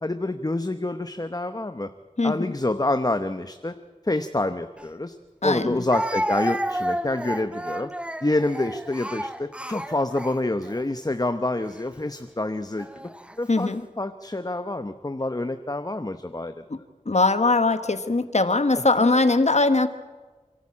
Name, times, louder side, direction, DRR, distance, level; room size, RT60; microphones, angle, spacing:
voice 1, 0.0-1.9 2.2-3.7 4.0-5.2 5.4-7.9 8.2-13.1 13.4-13.7 14.0-16.5, left 2 dB, 30° left, 9 dB, 0.9 m, -27 dB
voice 2, 2.2-2.5 5.4-5.8 13.5-13.8 16.7-16.8 17.0-19.9, left 3 dB, 60° left, 10 dB, 1.2 m, -21 dB
Speech, 4.8-4.9 5.9-10.8 11.6-11.8 12.8-13.4, right 1 dB, 10° right, 0.8 m, -31 dB
27.5 x 13.0 x 8.7 m, 1.3 s
wide cardioid pair, 50°, 13 cm